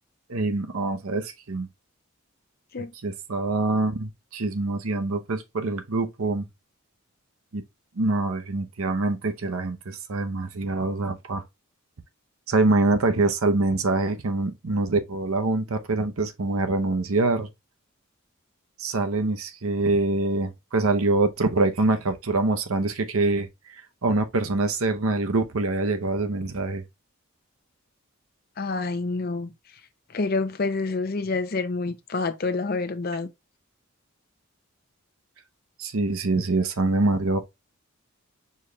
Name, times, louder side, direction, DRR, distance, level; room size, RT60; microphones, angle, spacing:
voice 1, 0.3-1.7 3.0-6.5 7.5-7.6 8.0-11.4 12.5-17.5 18.8-23.5 24.0-26.8 35.8-37.5, right 2 dB, 80° right, 0.8 m, -25 dB
voice 2, 28.6-29.5 30.1-33.3, left 3 dB, 45° left, 0.6 m, -27 dB
4.5 x 3.2 x 3.4 m
head